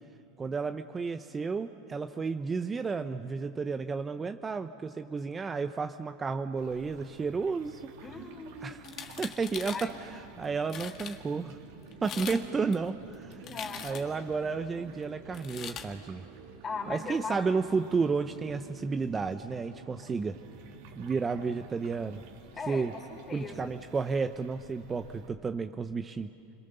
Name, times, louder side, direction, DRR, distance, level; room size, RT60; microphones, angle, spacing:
voice 1, 0.4-7.9 8.6-8.8 9.2-11.6 12.0-13.4 13.8-16.3 16.9-20.4 21.0-22.2 22.7-22.9 23.3-26.3, right 4 dB, 20° right, 8 dB, 0.8 m, -32 dB
sound 1, 6.6-25.3, right 4 dB, 70° right, 2.8 m, -51 dB
voice 2, 8.0-8.9 9.7-10.0 12.1-12.3 13.4-14.3 16.6-17.4 22.5-23.0 23.3-23.7, left 4 dB, 25° left, 4 dB, 4.1 m, -39 dB
sound 2, 8.8-9.9 10.4-10.5 10.7-11.2 11.9-12.4 12.7-14.2 15.3-15.9, left 8 dB, 40° left, 2.0 m, -41 dB
29.5 x 22.5 x 6.9 m, 2.7 s
supercardioid pair, 115°, 0 cm